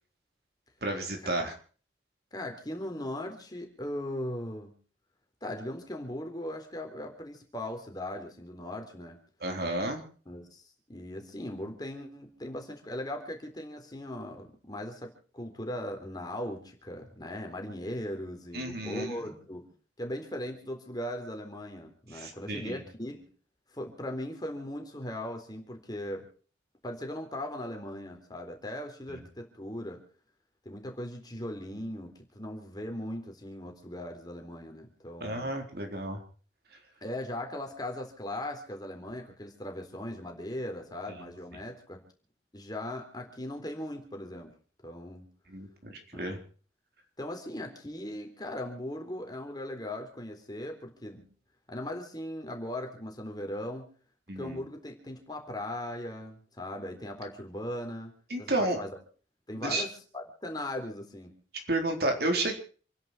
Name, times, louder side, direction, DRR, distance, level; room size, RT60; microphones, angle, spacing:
voice 1, 0.8-1.5 9.4-10.0 18.5-19.3 22.1-22.8 29.1-29.2 35.2-36.2 45.5-46.4 54.3-54.6 58.3-58.8 59.5-59.8 61.7-62.6, right 2 dB, 55° right, 3 dB, 3.9 m, -31 dB
voice 2, 2.3-4.7 5.4-9.2 10.3-19.7 20.0-23.3 23.7-26.3 26.8-30.0 30.7-35.5 37.0-42.0 42.5-44.5 44.8-45.3 46.1-46.3 47.2-51.3 51.7-53.9 54.4-58.1 58.4-59.0 59.5-61.3, left 1 dB, 20° left, 4 dB, 3.8 m, -39 dB
28.5 x 11.0 x 4.5 m, 0.41 s
head